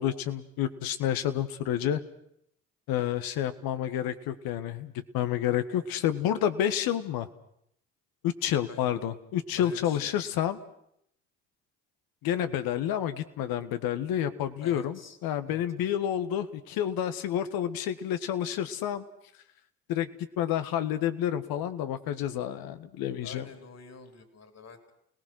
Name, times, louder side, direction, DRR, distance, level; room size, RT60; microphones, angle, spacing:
voice 1, 0.0-2.0 2.9-7.3 8.2-10.6 12.2-19.0 19.9-20.1 20.4-23.5, left 10 dB, 70° left, 11 dB, 1.5 m, -29 dB
voice 2, 9.5-10.1 14.6-15.2 15.5-15.6 23.2-24.9, left 4 dB, 45° left, 7 dB, 3.7 m, -47 dB
29.5 x 19.0 x 6.3 m, 0.72 s
hypercardioid pair, 55°, 38 cm